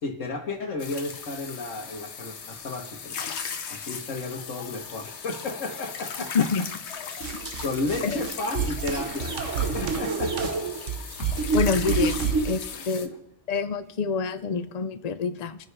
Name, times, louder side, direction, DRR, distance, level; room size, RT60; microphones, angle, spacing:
voice 1, 0.0-3.2 3.7-6.5 7.6-10.5 11.2-11.3 12.7-13.2, left 2 dB, 90° left, 1 dB, 1.6 m, -33 dB
sound 1, 0.8-13.1, left 6 dB, 65° left, 1.2 m, -38 dB
sound 2, 7.2-12.5, right 5 dB, 80° right, 1.5 m, -28 dB
voice 2, 11.5-13.1 13.5-15.6, left 5 dB, 40° left, 10 dB, 0.7 m, -26 dB
28.0 x 9.8 x 3.3 m, 0.86 s
omnidirectional pair, 1.3 m